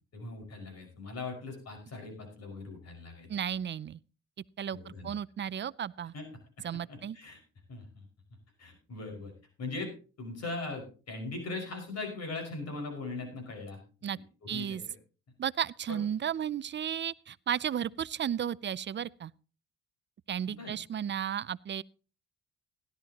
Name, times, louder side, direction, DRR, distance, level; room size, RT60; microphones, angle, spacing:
voice 1, 0.1-3.3 4.7-5.1 6.1-6.3 6.9-7.4 7.7-8.0 8.6-9.3 9.6-9.9 10.2-13.8 14.4-14.8 15.9-16.0 20.5-20.7, left 3 dB, 55° left, 5.6 m, -40 dB
voice 2, 3.3-4.0 4.6-6.1 6.6-7.2 14.0-14.2 14.5-14.8 15.4-19.3 20.3-21.8, right 9 dB, 40° right, 0.5 m, -34 dB
16.5 x 12.5 x 2.9 m
cardioid pair, 90°, 30 cm